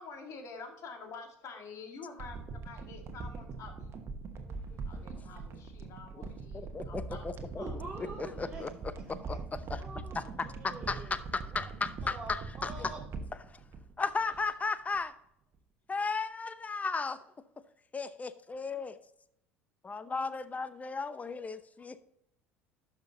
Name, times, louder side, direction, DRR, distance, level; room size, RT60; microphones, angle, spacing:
voice 1, 0.0-2.4 2.6-4.0 4.9-7.8, left 4 dB, 50° left, 4 dB, 1.9 m, -48 dB
sound 1, 2.2-14.7 14.9-15.0, right 4 dB, 40° right, 1.2 m, -42 dB
voice 2, 6.5-7.6 8.2-8.7 9.3-9.4 9.7-9.8 10.1-12.9 13.5-13.6 14.0-15.1 15.9-17.2 17.9-19.0 19.8-22.0, left 4 dB, 20° left, 14 dB, 0.7 m, -35 dB
voice 3, 7.6-8.7 8.9-11.2 11.5-11.6 12.0-13.0, right 2 dB, 10° right, -7 dB, 2.6 m, -46 dB
12.0 x 5.9 x 2.7 m, 0.73 s
hypercardioid pair, 65°, 7 cm